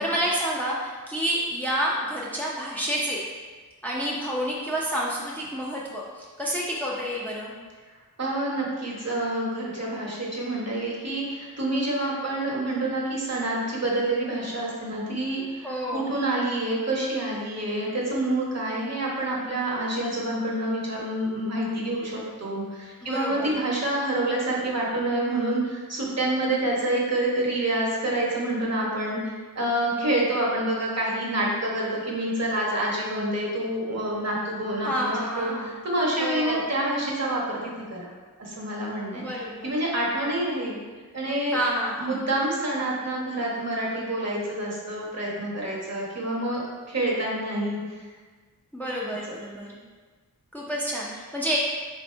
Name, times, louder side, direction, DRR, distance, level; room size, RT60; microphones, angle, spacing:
voice 1, 0.0-3.3 3.8-7.5 15.6-16.1 23.0-23.5 34.8-35.7 36.2-36.7 39.1-39.8 41.5-42.2 48.7-49.8 50.5-51.6, equal, 5° left, -5 dB, 0.6 m, -29 dB
voice 2, 8.2-38.1 38.4-39.2 39.6-40.8 41.1-41.6 42.0-46.6 46.9-47.8, right 1 dB, 50° right, -4 dB, 1.1 m, -27 dB
3.9 x 2.8 x 4.4 m, 1.4 s
wide cardioid pair, 80°, 34 cm